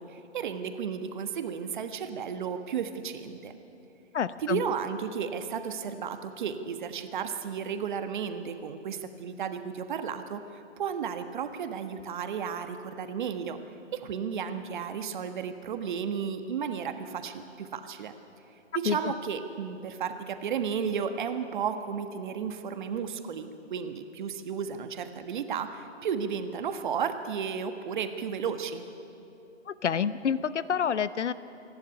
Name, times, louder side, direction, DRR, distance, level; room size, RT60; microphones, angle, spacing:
voice 1, 0.0-3.5 4.4-10.4 10.8-13.6 13.9-18.1 18.7-28.8, right 7 dB, 40° right, 8 dB, 1.4 m, -33 dB
voice 2, 4.1-4.6 18.8-19.1 29.7-31.3, left 7 dB, 75° left, 15 dB, 1.0 m, -28 dB
27.0 x 11.5 x 9.9 m, 2.8 s
hypercardioid pair, 155°, 36 cm